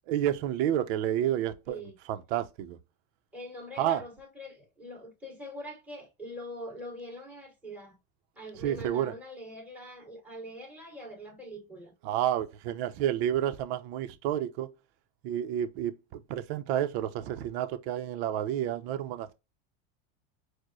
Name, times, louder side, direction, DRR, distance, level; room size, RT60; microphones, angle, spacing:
voice 1, 0.1-1.8 2.1-2.8 3.8-4.0 8.6-9.1 12.0-14.7 15.2-19.3, right 11 dB, 70° right, 0.7 m, -30 dB
voice 2, 3.3-8.0 8.4-11.9, equal, 5° right, 2.1 m, -43 dB
4.5 x 2.2 x 3.0 m
supercardioid pair, 115°, 32 cm